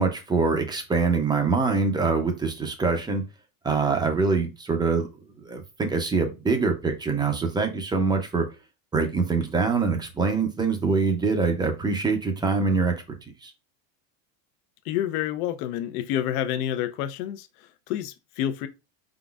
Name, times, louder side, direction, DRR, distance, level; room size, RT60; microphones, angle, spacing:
voice 1, 0.0-3.2 3.6-5.1 5.4-8.5 8.9-13.0 13.4-13.5, right 4 dB, 10° right, 0.4 m, -24 dB
voice 2, 14.8-18.7, left 11 dB, 75° left, 0.7 m, -29 dB
5.0 x 3.8 x 2.3 m
supercardioid pair, 145°, 47 cm